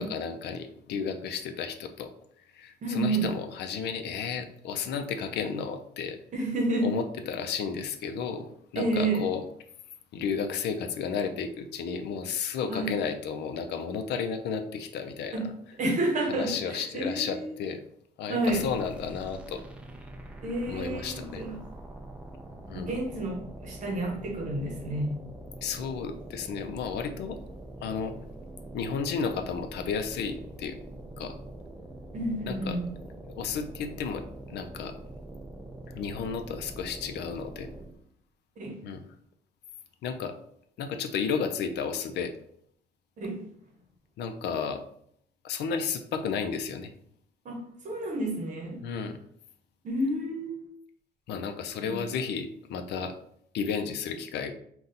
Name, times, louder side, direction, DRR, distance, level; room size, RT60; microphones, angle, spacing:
voice 1, 0.0-2.1 2.5-6.2 6.8-9.4 10.1-15.4 16.3-17.8 18.2-19.6 20.7-21.4 22.7-22.9 25.6-27.4 27.8-28.1 28.7-30.8 31.2-31.4 32.4-32.8 33.3-34.2 34.5-34.9 35.9-37.7 38.8-39.0 40.0-40.3 40.8-42.3 44.2-44.8 45.4-46.9 48.8-49.2 51.3-53.2 53.5-54.5, left 6 dB, 80° left, 8 dB, 0.5 m, -32 dB
voice 2, 2.8-3.3 6.3-6.9 8.7-9.2 12.7-12.9 15.3-15.5 15.8-17.5 18.3-18.6 20.4-21.6 22.6-25.2 32.1-32.9 38.6-38.8 43.2-43.4 47.4-47.6 47.8-48.8 49.8-50.6 51.9-52.0, right 2 dB, 45° right, 0 dB, 0.9 m, -30 dB
sound 1, 18.4-38.1, right 1 dB, 5° right, 0.3 m, -44 dB
4.0 x 2.3 x 3.9 m, 0.68 s
cardioid pair, 180°, 17 cm